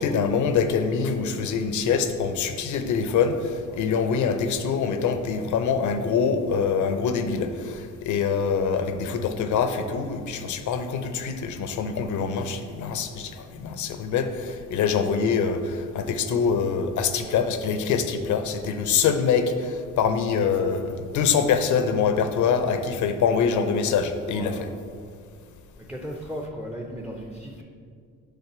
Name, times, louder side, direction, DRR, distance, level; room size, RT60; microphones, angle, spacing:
voice 1, 0.0-24.5, left 6 dB, 75° left, 8 dB, 0.7 m, -24 dB
voice 2, 24.3-24.9 25.8-27.6, equal, 5° right, 1 dB, 0.7 m, -36 dB
6.8 x 3.9 x 6.0 m, 2.2 s
cardioid pair, 90°, 30 cm